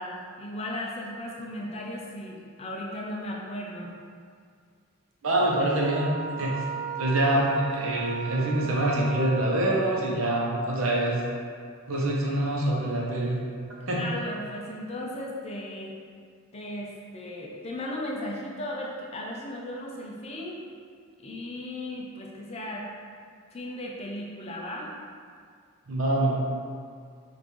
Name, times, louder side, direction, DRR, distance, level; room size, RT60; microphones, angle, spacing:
voice 1, 0.0-3.9 13.9-16.0 16.5-20.6 21.2-22.9 23.5-24.9, left 1 dB, 25° left, -2 dB, 0.5 m, -36 dB
voice 2, 5.2-6.1 6.4-6.6 7.0-11.2 11.9-13.4 13.9-14.0 25.9-26.4, right 1 dB, 65° right, -3 dB, 0.8 m, -25 dB
sound 1, 5.8-10.2, right 6 dB, 35° right, 0.4 m, -36 dB
5.4 x 2.5 x 3.1 m, 2.2 s
head